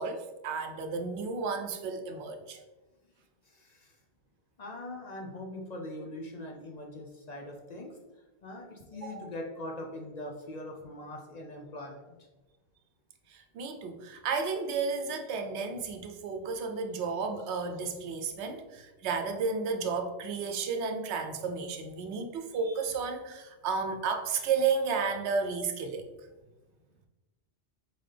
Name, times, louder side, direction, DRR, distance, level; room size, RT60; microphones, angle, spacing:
voice 1, 0.0-2.6 9.0-9.2 13.3-26.1, right 5 dB, 90° right, 6 dB, 0.9 m, -32 dB
voice 2, 3.4-4.0 4.6-7.9 8.4-12.0, left 1 dB, 50° left, 0 dB, 0.6 m, -42 dB
4.1 x 3.9 x 3.3 m, 1.2 s
omnidirectional pair, 1.1 m